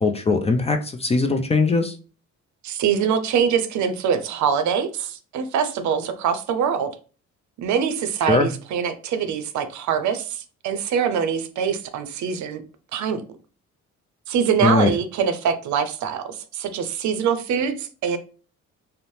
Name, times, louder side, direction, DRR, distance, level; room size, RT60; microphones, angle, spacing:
voice 1, 0.0-1.9 8.3-8.5 14.6-14.9, left 3 dB, 20° left, 0.4 m, -20 dB
voice 2, 2.6-6.9 7.6-12.6 12.9-13.2 14.3-18.2, right 7 dB, 70° right, 0.5 m, -24 dB
2.6 x 2.0 x 3.1 m
cardioid pair, 90°, 30 cm